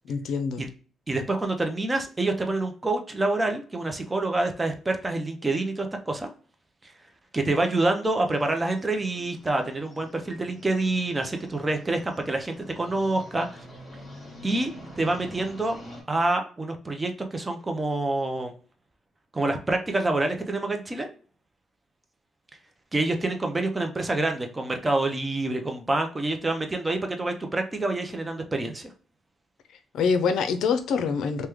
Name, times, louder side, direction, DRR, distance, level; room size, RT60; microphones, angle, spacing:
voice 1, 0.1-0.6 29.9-31.5, left 5 dB, 75° left, 0.4 m, -25 dB
voice 2, 1.1-6.3 6.8-6.9 7.3-13.6 14.4-15.8 16.1-18.5 19.3-21.1 22.9-28.9, right 2 dB, 20° right, 0.5 m, -27 dB
sound 1, 8.3-16.0, equal, 15° left, 1.4 m, -46 dB
3.0 x 2.2 x 3.4 m
cardioid pair, 90°, 0 cm